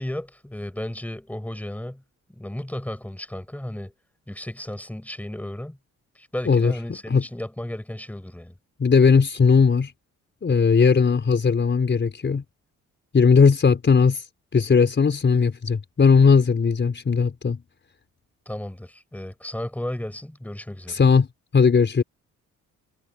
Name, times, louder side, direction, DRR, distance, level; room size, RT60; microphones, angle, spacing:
voice 1, 0.0-2.0 2.3-3.9 4.3-5.8 6.1-8.6 18.5-21.0, left 1 dB, 5° left, 7.5 m, -34 dB
voice 2, 8.8-9.9 10.4-12.4 13.1-14.2 14.5-17.6 20.9-21.3 21.5-22.0, left 5 dB, 40° left, 4.8 m, -18 dB
cardioid pair, 90°, 30 cm